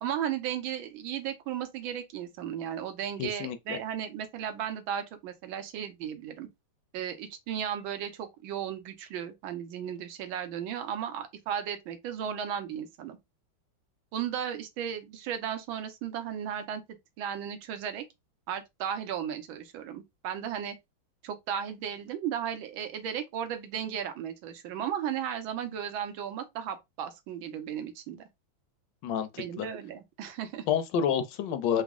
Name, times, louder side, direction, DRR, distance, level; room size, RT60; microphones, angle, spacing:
voice 1, 0.0-6.5 6.9-13.2 14.1-16.8 17.2-18.0 18.5-20.7 21.2-28.2 29.4-30.6, right 9 dB, 90° right, 1.5 m, -35 dB
voice 2, 3.2-3.8 29.0-29.7 30.7-31.8, left 8 dB, 75° left, 1.1 m, -29 dB
4.0 x 2.0 x 3.5 m
omnidirectional pair, 2.1 m